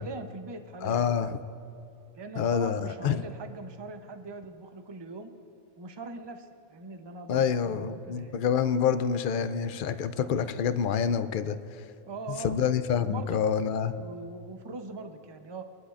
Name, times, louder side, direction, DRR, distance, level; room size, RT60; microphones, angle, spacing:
voice 1, 0.0-1.4 2.1-5.3 5.8-8.3 12.1-12.6 13.0-13.4 14.0-15.6, right 3 dB, 30° right, 7 dB, 0.6 m, -41 dB
voice 2, 0.8-1.4 2.4-3.2 7.3-11.9 12.4-14.0, left 7 dB, 70° left, 11 dB, 0.5 m, -27 dB
22.0 x 11.5 x 2.5 m, 2.7 s
omnidirectional pair, 1.4 m